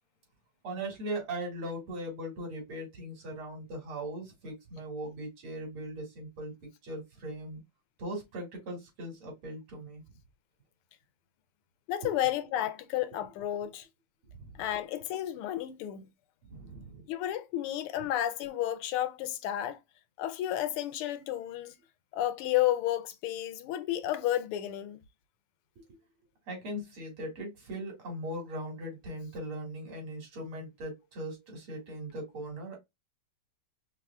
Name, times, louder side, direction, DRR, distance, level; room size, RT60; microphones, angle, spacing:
voice 1, 0.6-6.5 6.8-7.6 8.0-10.0 12.0-12.1 14.3-14.5 16.5-17.1 25.8-25.9 26.5-32.8, right 1 dB, 80° right, 3.1 m, -39 dB
voice 2, 11.9-13.9 14.6-16.1 17.1-19.8 20.2-21.8 22.1-25.0, left 12 dB, 85° left, 1.6 m, -32 dB
5.3 x 3.4 x 2.4 m
omnidirectional pair, 2.4 m